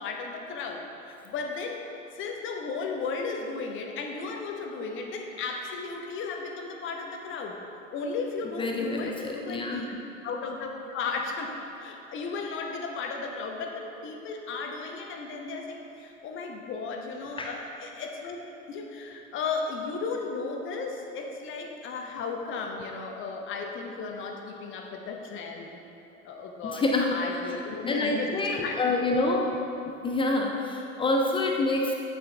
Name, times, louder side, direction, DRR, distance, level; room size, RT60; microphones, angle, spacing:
voice 1, 0.0-1.9 2.1-7.6 7.9-9.9 10.2-18.4 18.7-25.8 26.2-28.8, left 4 dB, 30° left, 2 dB, 0.9 m, -35 dB
voice 2, 8.6-9.9 17.4-17.6 26.7-27.2 27.9-29.6 29.9-31.9, left 2 dB, 15° left, 1 dB, 0.4 m, -27 dB
8.7 x 6.8 x 3.3 m, 2.8 s
figure-of-eight pair, 80°, 39 cm